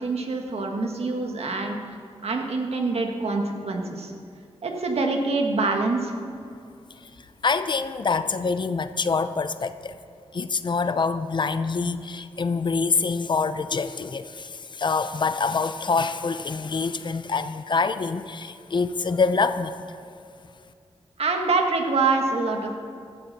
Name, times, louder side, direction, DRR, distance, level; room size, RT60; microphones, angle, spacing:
voice 1, 0.0-1.8 2.2-4.1 4.6-6.2 21.2-22.8, right 3 dB, 70° right, 2 dB, 1.6 m, -25 dB
voice 2, 7.4-10.0 10.3-19.8, left 4 dB, 45° left, 12 dB, 0.6 m, -25 dB
15.5 x 13.0 x 4.2 m, 2.4 s
wide cardioid pair, 110°, 11 cm